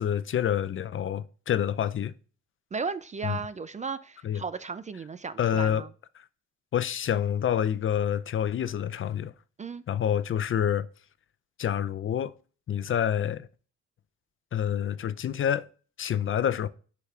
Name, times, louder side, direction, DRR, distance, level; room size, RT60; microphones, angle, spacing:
voice 1, 0.0-2.1 3.2-3.4 4.2-4.4 5.4-5.9 6.2-6.3 6.7-9.3 9.9-10.9 11.6-12.3 12.7-13.5 14.5-15.6 16.0-16.7, left 9 dB, 45° left, 0.5 m, -27 dB
voice 2, 2.7-5.9 9.6-9.8, right 5 dB, 25° right, 0.4 m, -35 dB
8.1 x 5.9 x 2.4 m
cardioid pair, 90°, 30 cm